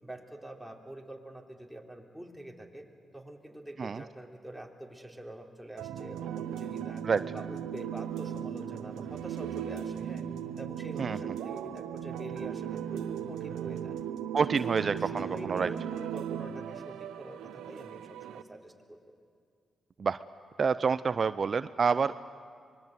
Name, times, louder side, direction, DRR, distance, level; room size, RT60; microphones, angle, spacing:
voice 1, 0.0-2.9 3.1-7.0 7.3-10.2 10.6-14.0 14.5-19.0, right 1 dB, ahead, 0 dB, 3.6 m, -45 dB
sound 1, 5.8-18.4, right 9 dB, 85° right, 0.8 m, -37 dB
voice 2, 14.3-15.7 20.0-20.2 20.6-22.2, right 5 dB, 55° right, 14 dB, 0.5 m, -28 dB
25.0 x 21.0 x 8.1 m, 2.1 s
supercardioid pair, 45°, 0 cm